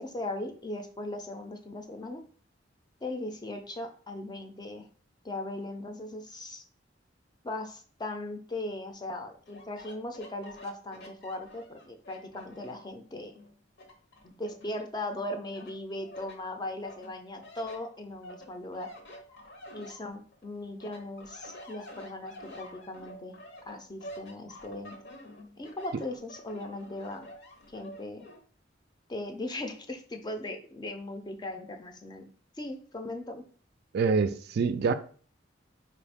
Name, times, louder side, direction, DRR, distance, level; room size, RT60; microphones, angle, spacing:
voice 1, 0.0-2.2 3.0-4.9 5.2-6.6 7.4-13.4 14.2-18.9 19.7-23.4 23.7-25.0 25.6-27.3 27.7-28.2 29.1-32.2 32.6-33.4, left 2 dB, 20° left, 0.5 m, -38 dB
sound 1, 9.5-12.9 13.3-15.1 15.5-16.4 16.8-20.5 20.8-28.4, equal, 65° left, 0.8 m, -49 dB
voice 2, 33.9-34.9, right 5 dB, 55° right, 0.3 m, -25 dB
4.5 x 2.5 x 3.5 m
head